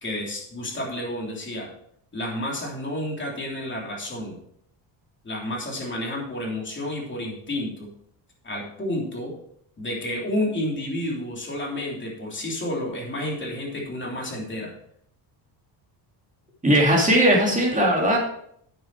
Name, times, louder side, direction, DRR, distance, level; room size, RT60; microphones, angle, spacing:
voice 1, 0.0-1.7 2.1-4.4 5.2-7.9 8.4-9.3 9.8-14.7, left 1 dB, 25° left, -2 dB, 3.2 m, -30 dB
voice 2, 16.6-18.2, right 1 dB, 15° right, -1 dB, 2.9 m, -18 dB
9.0 x 7.2 x 4.7 m, 0.69 s
cardioid pair, 120°, 47 cm